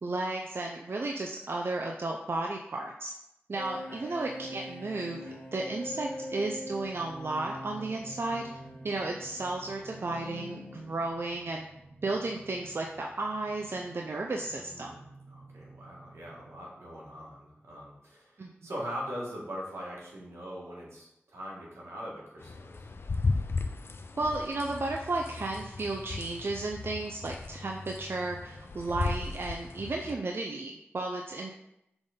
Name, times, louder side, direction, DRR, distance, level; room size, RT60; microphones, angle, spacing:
voice 1, 0.0-3.1 3.5-5.2 5.5-8.5 8.8-11.6 12.0-14.9 18.4-18.5 24.2-31.5, right 2 dB, 60° right, 1 dB, 0.6 m, -33 dB
sound 1, 3.5-11.2, left 1 dB, 35° left, 1.9 m, -43 dB
sound 2, 4.8-16.6, right 2 dB, 45° right, 1.8 m, -54 dB
voice 2, 14.5-22.9, equal, 90° right, -4 dB, 1.8 m, -42 dB
sound 3, 22.4-30.1, left 3 dB, 65° left, 0.5 m, -36 dB
5.9 x 3.8 x 5.2 m, 0.85 s
cardioid pair, 50°, 4 cm